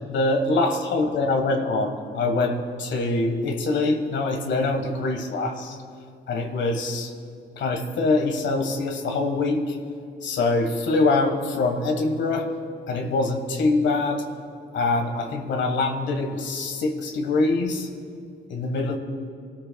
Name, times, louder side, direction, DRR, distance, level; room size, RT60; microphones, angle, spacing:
voice 1, 0.0-5.8 6.3-7.1 7.6-9.8 10.2-12.5 12.9-14.2 14.7-17.9 18.5-19.0, left 3 dB, 70° left, 4 dB, 1.5 m, -24 dB
27.0 x 13.0 x 2.3 m, 2.3 s
cardioid pair, 90°, 20 cm